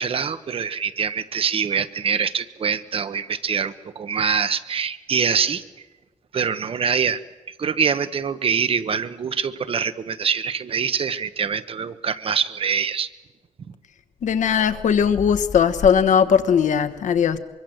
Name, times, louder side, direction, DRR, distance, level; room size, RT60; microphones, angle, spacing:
voice 1, 0.0-5.9 6.3-7.2 7.5-13.1 13.7-13.8, right 6 dB, 50° right, 12 dB, 1.0 m, -24 dB
voice 2, 14.2-17.4, left 7 dB, 75° left, 10 dB, 1.3 m, -19 dB
24.0 x 23.0 x 7.9 m, 1.2 s
wide cardioid pair, 155°, 13 cm